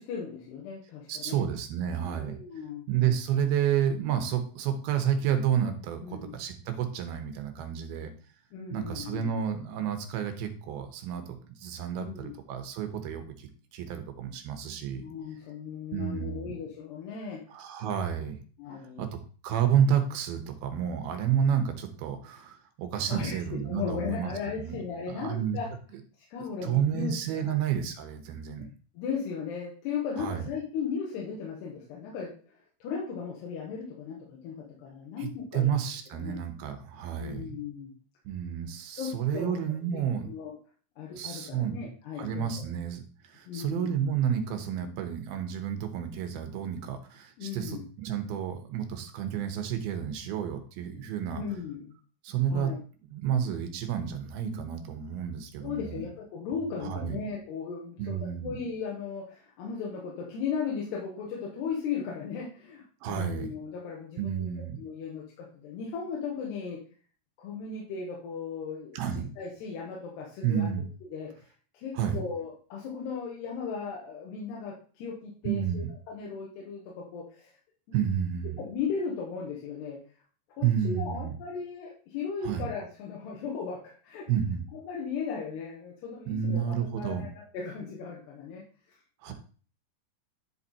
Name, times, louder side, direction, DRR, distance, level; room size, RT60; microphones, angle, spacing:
voice 1, 0.0-1.4 2.2-2.9 6.0-6.4 8.5-9.4 12.0-12.3 15.0-17.4 18.6-19.0 23.0-25.7 26.3-27.5 29.0-32.3 32.8-35.7 36.1-36.4 37.2-37.9 39.0-39.6 39.9-40.5 41.0-42.6 43.5-43.9 47.4-47.8 50.9-51.0 51.3-51.9 52.5-52.8 55.6-64.5 64.8-66.8 67.4-69.0 69.4-70.7 71.1-71.5 71.7-77.5 78.6-80.0 80.6-84.3 84.7-88.6 89.3-89.4, left 6 dB, 85° left, -3 dB, 3.5 m, -36 dB
voice 2, 1.1-2.4 2.9-8.1 8.7-15.0 15.9-16.5 17.5-18.4 19.0-19.1 19.4-24.3 24.6-24.8 25.1-25.6 26.6-28.6 30.2-30.5 35.2-37.4 38.3-40.3 41.2-41.8 42.2-51.4 52.2-52.7 53.1-56.0 56.8-57.2 58.0-58.5 63.0-63.5 64.2-64.8 68.9-69.3 70.4-70.8 71.9-72.2 75.5-75.9 77.9-78.6 80.6-81.3 82.4-82.7 84.3-84.6 86.3-87.2 89.2-89.3, right 8 dB, 75° right, 7 dB, 2.8 m, -30 dB
11.0 x 4.1 x 4.1 m, 0.41 s
omnidirectional pair, 4.6 m